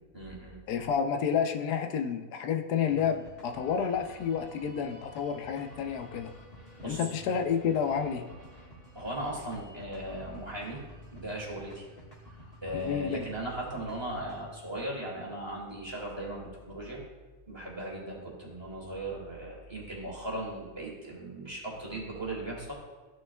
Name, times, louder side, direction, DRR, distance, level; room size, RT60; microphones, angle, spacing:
voice 1, 0.1-0.6 6.8-7.0 8.9-10.8 11.1-11.9 12.6-17.0 17.5-22.7, right 1 dB, 15° right, -4 dB, 2.1 m, -37 dB
voice 2, 0.7-6.3 6.8-8.3 12.7-13.3, left 7 dB, 90° left, 4 dB, 1.2 m, -30 dB
sound 1, 2.9-20.0, equal, 40° left, 1.7 m, -52 dB
13.5 x 6.3 x 2.3 m, 1.3 s
omnidirectional pair, 1.6 m